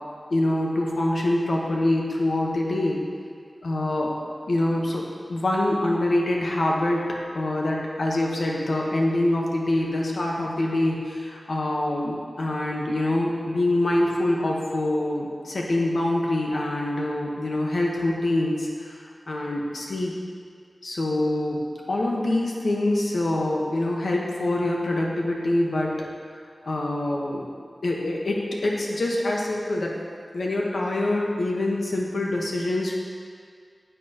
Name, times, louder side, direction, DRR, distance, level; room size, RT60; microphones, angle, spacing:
voice 1, 0.3-3.0 3.6-4.1 4.5-7.1 7.3-20.1 20.8-21.6 21.9-26.0 26.6-27.5 27.8-29.9 30.3-32.9, left 1 dB, 85° left, -2 dB, 1.1 m, -25 dB
9.9 x 6.9 x 2.9 m, 2.1 s
wide cardioid pair, 75°, 0 cm